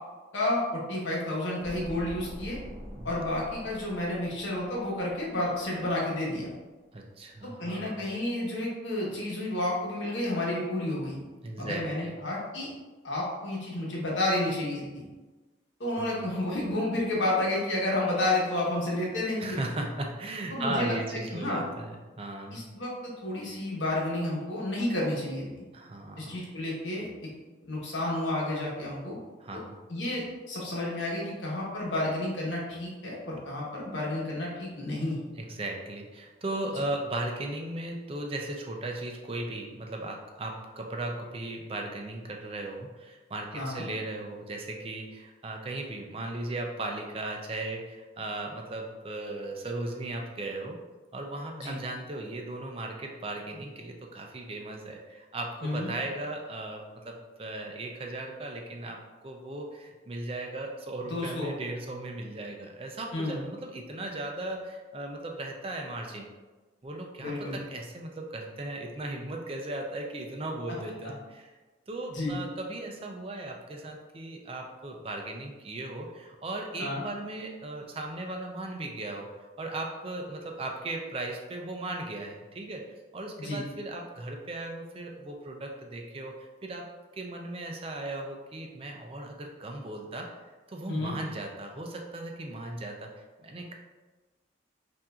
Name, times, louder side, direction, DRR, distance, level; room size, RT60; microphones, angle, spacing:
voice 1, 0.3-2.6 3.0-6.5 7.4-11.2 11.6-12.7 13.0-15.0 15.8-19.6 20.5-20.9 21.3-21.6 22.5-25.6 26.2-27.1 27.7-29.2 29.9-35.2 43.5-43.8 51.5-51.8 55.6-55.9 61.0-61.5 63.1-63.4 67.2-67.6 72.1-72.4 76.8-77.0 83.4-83.6 90.9-91.2, left 1 dB, 80° left, -4 dB, 1.2 m, -31 dB
sound 1, 1.6-5.9 6.2-6.3, equal, 50° right, 0.8 m, -45 dB
voice 2, 6.9-8.0 11.4-12.2 15.9-16.3 19.4-22.6 25.7-26.4 29.4-29.8 35.4-50.8 51.1-59.0 59.2-66.3 66.8-71.5 71.9-79.3 79.6-82.8 83.1-86.9 87.1-90.3 90.7-93.7, right 2 dB, 30° right, 2 dB, 0.4 m, -37 dB
5.6 x 2.6 x 2.3 m, 1.3 s
head